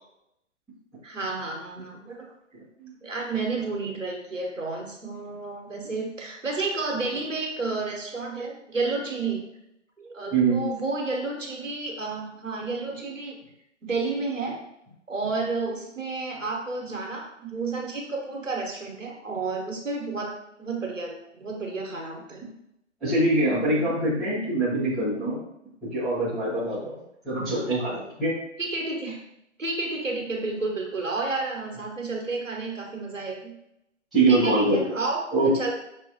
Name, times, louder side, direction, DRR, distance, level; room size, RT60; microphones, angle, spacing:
voice 1, 1.0-2.2 3.0-9.4 10.0-13.4 13.8-14.6 15.1-22.4 28.6-29.2 29.6-33.5 34.3-35.7, right 3 dB, 90° right, 0 dB, 1.2 m, -31 dB
voice 2, 10.3-10.6 23.0-25.4 25.9-27.0 27.2-28.3 34.1-34.8 35.3-35.5, right 2 dB, ahead, -15 dB, 0.5 m, -23 dB
5.9 x 2.3 x 2.7 m, 0.82 s
figure-of-eight pair, 130°, 37 cm